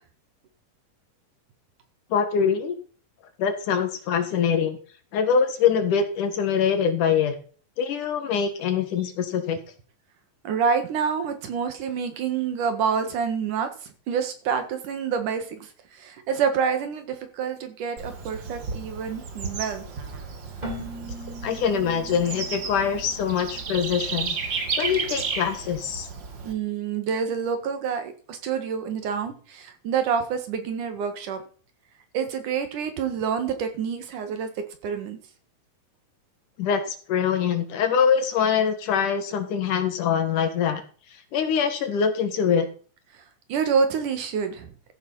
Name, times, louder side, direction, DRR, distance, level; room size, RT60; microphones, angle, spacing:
voice 1, 2.1-2.8 3.4-4.8 5.1-7.4 7.8-9.6 21.4-24.4 24.8-26.1 36.6-40.8 41.3-42.7, left 7 dB, 65° left, 8 dB, 3.0 m, -24 dB
voice 2, 10.4-19.8 26.4-31.4 32.1-35.2 43.5-44.7, right 6 dB, 65° right, 8 dB, 3.1 m, -27 dB
Bird / Insect, 18.0-26.5, right 5 dB, 45° right, 1.8 m, -33 dB
Keyboard (musical), 20.6-24.2, right 1 dB, 10° right, 3.2 m, -40 dB
14.5 x 7.3 x 5.5 m, 0.40 s
omnidirectional pair, 4.0 m